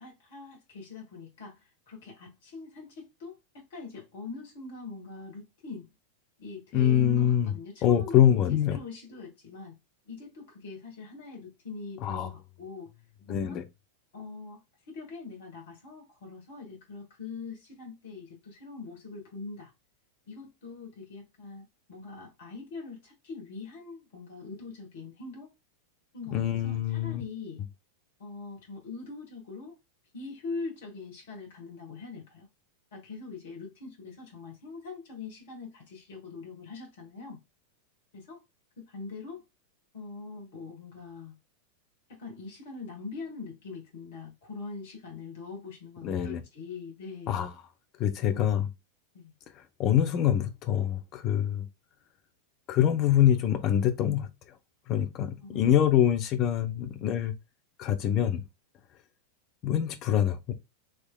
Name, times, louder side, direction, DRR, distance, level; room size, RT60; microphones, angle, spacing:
voice 1, 0.0-1.6 1.9-5.9 6.4-8.4 8.7-9.8 10.1-12.9 13.3-13.6 14.1-19.7 20.3-25.5 26.1-27.6 28.2-29.8 30.1-32.5 32.9-37.4 38.1-38.4 38.8-39.4 39.9-41.3 42.1-47.5 48.3-48.5 49.1-49.3 55.4-55.8, left 4 dB, 55° left, 1.5 m, -42 dB
voice 2, 6.7-7.5 7.8-8.8 12.0-12.3 13.3-13.6 26.3-27.2 46.0-46.4 47.3-47.5 48.0-48.7 49.8-51.7 52.7-54.3 54.9-57.3 57.8-58.4 59.6-60.5, left 10 dB, 35° left, 0.6 m, -25 dB
3.7 x 3.1 x 2.3 m
figure-of-eight pair, 90°, 0 cm